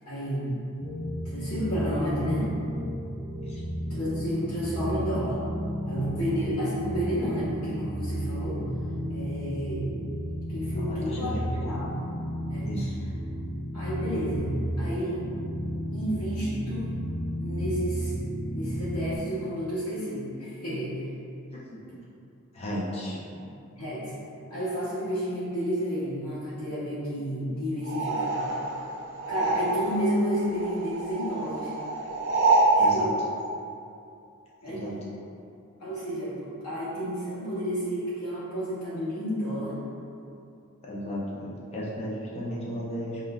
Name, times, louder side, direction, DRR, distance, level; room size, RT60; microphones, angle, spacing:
voice 1, 0.1-0.6 1.2-2.5 3.9-5.4 5.9-8.6 9.1-9.9 10.5-11.9 12.5-12.7 13.7-14.5 14.8-15.3 15.9-16.9 17.4-18.1 18.5-21.0 23.3-23.4 23.7-24.1 24.5-28.5 29.3-31.8 32.7-33.2 34.6-35.1 35.8-39.7, equal, 70° left, -13 dB, 0.9 m, -31 dB
sound 1, 0.8-19.2, equal, 5° left, 1.2 m, -33 dB
voice 2, 10.8-11.5 12.6-12.9 21.5-21.7 22.5-23.2 32.8-33.1 34.7-34.9 40.8-43.2, equal, 25° left, -6 dB, 0.5 m, -34 dB
sound 2, 27.8-30.1 30.3-32.8, right 3 dB, 55° right, 0.4 m, -26 dB
5.3 x 2.5 x 2.3 m, 2.6 s
head